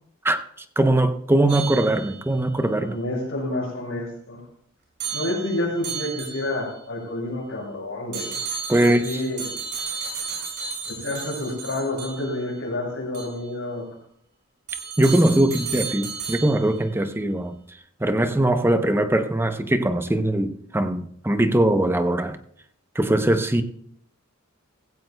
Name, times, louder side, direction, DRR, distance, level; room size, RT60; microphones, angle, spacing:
voice 1, 0.8-2.9 8.7-9.2 15.0-17.6 18.0-22.4 22.9-23.6, right 1 dB, 10° right, 0.7 m, -21 dB
sound 1, 1.5-2.4 5.0-6.8 8.1-12.5 13.1-13.4 14.7-16.8, right 6 dB, 55° right, 5.7 m, -33 dB
voice 2, 2.8-4.4 5.1-8.3 8.8-9.5 10.9-13.8 15.5-15.6, left 1 dB, 70° left, 5.9 m, -29 dB
17.0 x 15.5 x 2.2 m
head